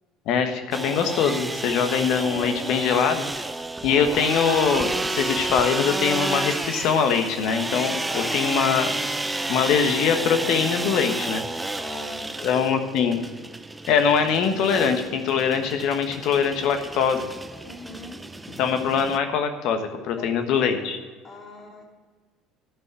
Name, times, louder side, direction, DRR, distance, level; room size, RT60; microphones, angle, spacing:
voice 1, 0.3-3.2 3.8-8.9 9.5-11.5 12.4-13.2 13.9-17.3 18.6-21.0, left 6 dB, 65° left, 6 dB, 1.3 m, -23 dB
sound 1, 0.7-19.2, right 2 dB, 15° right, 0.6 m, -31 dB
voice 2, 8.1-9.3 11.8-12.9 17.6-18.2 20.2-20.9 21.2-21.8, left 3 dB, 40° left, 0 dB, 3.0 m, -41 dB
11.5 x 5.6 x 7.6 m, 1.5 s
hypercardioid pair, 70°, 0 cm